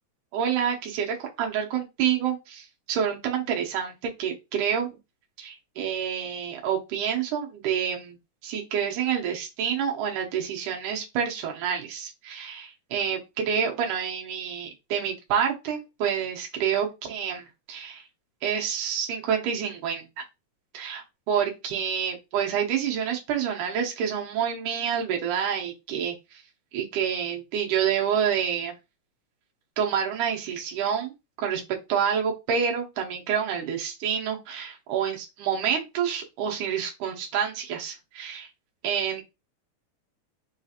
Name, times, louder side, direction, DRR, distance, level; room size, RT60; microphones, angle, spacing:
voice 1, 0.3-4.9 5.4-8.2 8.4-18.0 18.4-20.0 20.7-26.4 26.7-28.8 29.8-31.1 31.4-31.6 31.9-38.5 38.8-39.2, right 8 dB, 85° right, 0 dB, 2.4 m, -28 dB
5.4 x 2.8 x 2.4 m, 0.24 s
omnidirectional pair, 3.5 m